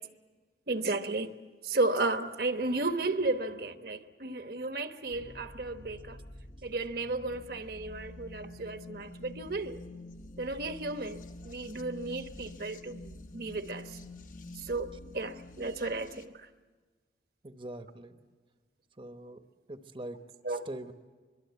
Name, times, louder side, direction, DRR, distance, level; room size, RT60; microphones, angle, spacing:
voice 1, 0.7-1.3 1.6-6.2 6.6-9.8 10.4-14.0 14.6-16.5 20.4-20.7, right 2 dB, 55° right, 8 dB, 1.1 m, -34 dB
sound 1, 5.1-16.3, left 1 dB, 45° left, 1.2 m, -48 dB
voice 2, 17.4-18.2 19.0-19.4 19.7-20.2 20.5-20.9, right 1 dB, 30° right, 7 dB, 1.0 m, -43 dB
25.0 x 22.5 x 8.3 m, 1.4 s
head